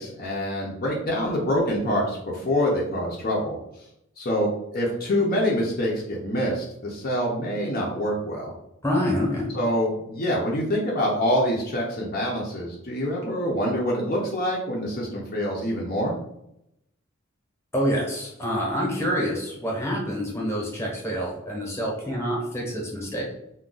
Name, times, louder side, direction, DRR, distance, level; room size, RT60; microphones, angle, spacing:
voice 1, 0.0-3.6 4.2-8.5 9.5-16.2, equal, 45° left, -3 dB, 0.6 m, -26 dB
voice 2, 8.8-9.5 17.7-23.2, equal, 15° left, -3 dB, 0.9 m, -27 dB
2.4 x 2.2 x 3.8 m, 0.79 s
head